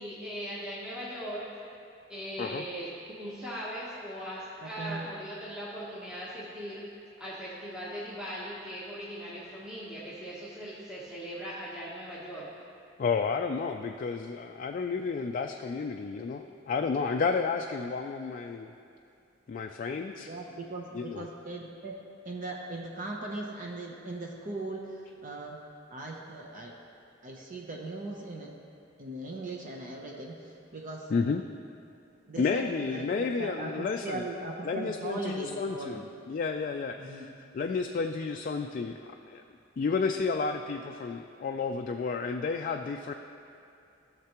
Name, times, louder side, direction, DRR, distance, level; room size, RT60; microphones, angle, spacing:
voice 1, 0.0-1.6 2.1-2.9 3.2-6.8 7.2-12.5, equal, 5° right, -9 dB, 1.1 m, -39 dB
voice 2, 4.6-5.1 20.2-21.9 22.2-25.6 25.9-26.7 27.2-28.5 29.0-31.1 32.3-36.1 37.0-37.3, right 2 dB, 45° right, 0 dB, 0.8 m, -39 dB
voice 3, 13.0-18.7 19.5-20.3 20.9-21.3 31.1-31.4 32.4-34.2 34.6-37.3 37.5-39.0 39.3-39.4 39.8-43.1, left 4 dB, 45° left, 4 dB, 0.3 m, -31 dB
15.0 x 6.6 x 3.0 m, 2.5 s
head